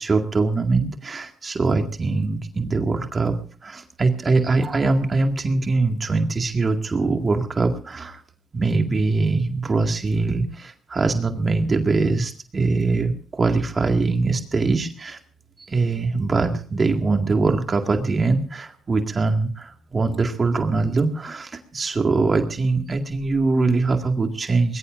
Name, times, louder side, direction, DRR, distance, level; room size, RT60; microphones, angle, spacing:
voice 1, 0.0-3.4 3.6-8.2 8.5-15.2 15.6-24.8, right 3 dB, 35° right, 4 dB, 2.1 m, -22 dB
23.5 x 20.5 x 2.6 m, 0.40 s
cardioid pair, 90°, 0 cm